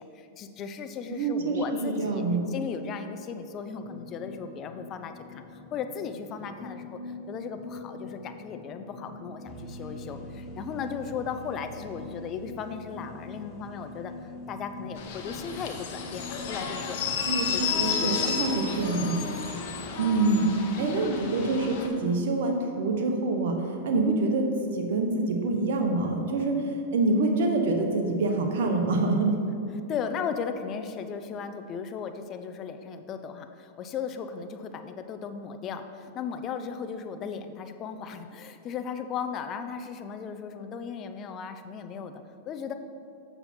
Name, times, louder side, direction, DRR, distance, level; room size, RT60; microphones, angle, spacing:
voice 1, 0.0-5.4 5.7-17.0 17.5-18.4 19.1-19.4 29.9-42.7, left 6 dB, 35° left, 8 dB, 0.6 m, -36 dB
voice 2, 1.1-2.4 17.3-19.2 20.0-20.5 20.8-23.6 23.8-26.5 26.9-29.3, right 3 dB, 70° right, 3 dB, 1.1 m, -26 dB
sound 1, 3.8-19.4, left 3 dB, 80° left, 1.3 m, -44 dB
sound 2, 9.4-18.9, right 4 dB, 20° right, 1.5 m, -49 dB
sound 3, 15.0-21.9, left 6 dB, 60° left, 1.0 m, -32 dB
7.0 x 6.8 x 4.4 m, 2.6 s
hypercardioid pair, 115°, 0 cm